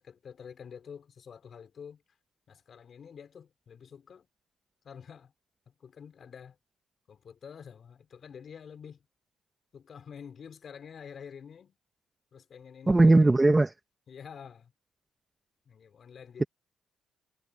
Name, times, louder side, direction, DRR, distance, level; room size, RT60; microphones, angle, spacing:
voice 1, 0.0-2.0 2.5-4.3 4.8-5.3 5.7-6.6 7.1-9.1 9.7-11.8 12.3-13.4 14.1-14.7 15.6-16.5, left 7 dB, 50° left, 4.8 m, -48 dB
voice 2, 12.9-13.7, right 2 dB, 15° right, 1.3 m, -19 dB
cardioid pair, 90°, 0 cm